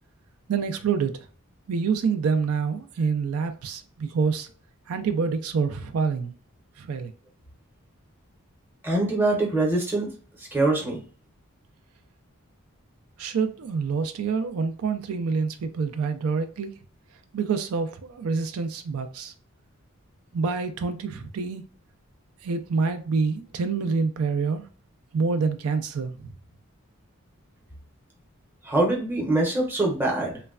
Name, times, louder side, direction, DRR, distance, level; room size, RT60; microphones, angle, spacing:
voice 1, 0.5-1.2 1.7-4.5 4.9-6.3 6.8-7.1 13.2-16.8 17.3-19.3 20.3-21.6 22.4-24.6 25.1-26.1, right 5 dB, 85° right, 0.4 m, -26 dB
voice 2, 8.8-10.1 10.4-11.0 28.6-30.4, right 2 dB, 10° right, 0.7 m, -24 dB
3.1 x 2.1 x 2.3 m
head